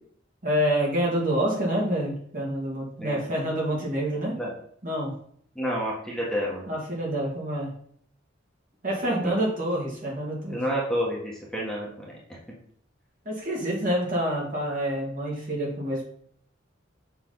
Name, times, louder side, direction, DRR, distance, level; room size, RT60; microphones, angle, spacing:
voice 1, 0.4-4.4 4.8-5.2 6.7-7.7 8.8-10.6 13.2-16.0, equal, 45° right, -3 dB, 2.5 m, -27 dB
voice 2, 5.5-6.7 9.0-9.4 10.5-12.4, equal, 5° left, -5 dB, 1.6 m, -30 dB
6.8 x 6.3 x 4.1 m, 0.63 s
head